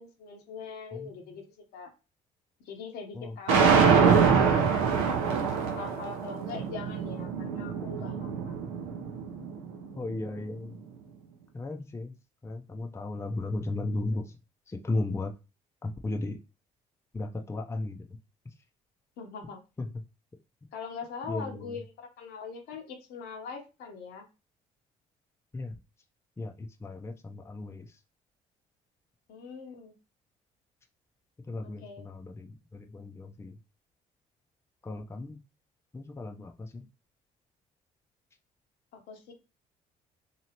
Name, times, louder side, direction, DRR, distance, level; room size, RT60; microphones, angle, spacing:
voice 1, 0.0-1.4 1.7-1.9 2.6-5.2 5.8-8.7 19.2-19.6 20.7-24.2 29.3-29.9 31.8-32.1 38.9-39.3, left 5 dB, 70° left, 3 dB, 0.9 m, -42 dB
voice 2, 0.9-1.4 3.1-3.6 10.0-10.8 11.5-12.1 12.4-14.4 14.7-15.3 15.8-16.4 17.1-18.1 19.8-19.9 21.3-21.8 25.5-25.7 26.4-27.9 31.5-33.6 34.8-35.4 35.9-36.9, left 2 dB, 15° left, 4 dB, 0.5 m, -35 dB
sound 1, 3.5-9.6, right 6 dB, 90° right, 0.6 m, -25 dB
2.9 x 2.8 x 2.8 m, 0.29 s
supercardioid pair, 60°, 17 cm